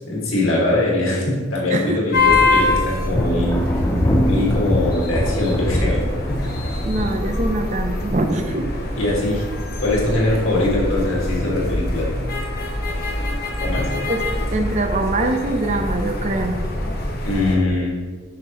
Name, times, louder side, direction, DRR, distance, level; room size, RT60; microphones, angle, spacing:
voice 1, 0.0-3.5 4.3-6.0 6.3-6.4 6.7-6.9 9.0-9.4 9.8-12.1 13.6-13.9 17.2-18.0, left 2 dB, 80° left, -4 dB, 1.8 m, -22 dB
sound 1, 2.1-17.6, left 2 dB, 50° left, 1.2 m, -24 dB
Thunder, 3.1-9.6 9.9-10.5 10.9-11.8, left 1 dB, 15° left, 0.5 m, -25 dB
voice 2, 6.8-8.7 14.1-14.2 14.5-16.6, right 2 dB, 35° right, 5 dB, 0.5 m, -23 dB
8.0 x 5.8 x 2.9 m, 1.5 s
head